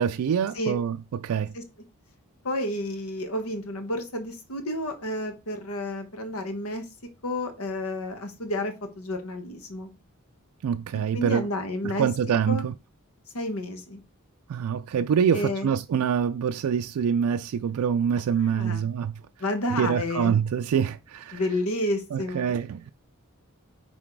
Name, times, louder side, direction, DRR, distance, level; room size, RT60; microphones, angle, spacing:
voice 1, 0.0-1.5 10.6-11.5 11.8-12.7 14.5-19.1 19.7-21.4 22.1-22.9, right 7 dB, 90° right, 0.3 m, -25 dB
voice 2, 2.4-6.8 7.2-9.9 11.1-12.1 12.5-12.7 13.3-14.0 15.3-15.7 18.4-18.9 19.4-20.4 21.3-22.5, left 1 dB, 80° left, 1.3 m, -30 dB
5.9 x 4.1 x 4.6 m
head